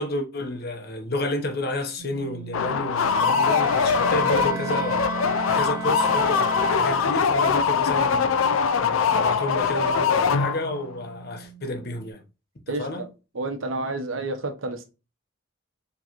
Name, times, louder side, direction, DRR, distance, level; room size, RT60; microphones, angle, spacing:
voice 1, 0.0-5.1 5.5-8.3 8.8-12.2 12.7-13.0, left 1 dB, 50° left, 0.9 m, -30 dB
sound 1, 2.0-12.1, right 7 dB, 40° right, 1.7 m, -41 dB
sound 2, 2.5-10.8, left 6 dB, 85° left, 0.4 m, -22 dB
Bowed string instrument, 3.0-7.5, right 5 dB, 25° right, 1.0 m, -35 dB
voice 2, 12.7-13.1 13.3-14.8, right 2 dB, 85° right, 0.9 m, -30 dB
4.7 x 3.2 x 3.0 m
head